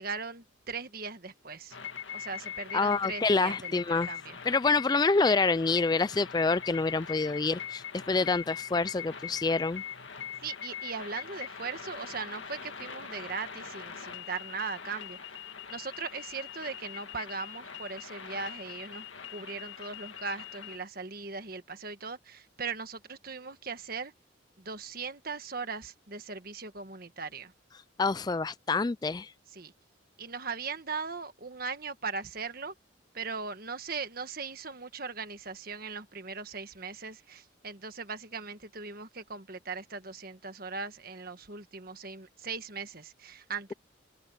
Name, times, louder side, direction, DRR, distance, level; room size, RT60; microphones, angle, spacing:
voice 1, 0.0-1.8 2.1-4.4 10.4-15.2 15.7-24.1 24.6-27.5 29.5-29.7 30.2-32.7 33.1-43.7, right 4 dB, 45° right, 1.5 m, -39 dB
sound 1, 1.7-20.8, left 8 dB, 70° left, 2.0 m, -42 dB
voice 2, 2.7-4.1 4.5-9.8 28.0-29.3, left 3 dB, 20° left, 0.3 m, -27 dB
head